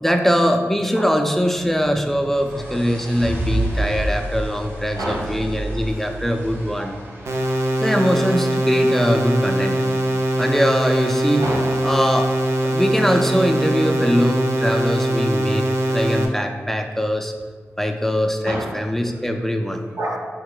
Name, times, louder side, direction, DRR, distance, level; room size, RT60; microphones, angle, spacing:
voice 1, 0.0-7.0 7.8-9.9 10.4-11.4 11.8-12.3 12.6-17.3 17.8-19.9, equal, 5° left, 4 dB, 0.4 m, -21 dB
sound 1, 1.6-7.7, right 1 dB, 45° right, 1.0 m, -29 dB
voice 2, 4.9-5.4 6.8-6.9 11.4-11.9 18.4-18.8 19.1-19.2 19.9-20.2, right 1 dB, 75° right, -2 dB, 0.9 m, -28 dB
sound 2, 7.3-16.3, right 1 dB, 60° right, 0.5 m, -22 dB
4.7 x 3.6 x 2.2 m, 1.5 s
cardioid pair, 40°, 5 cm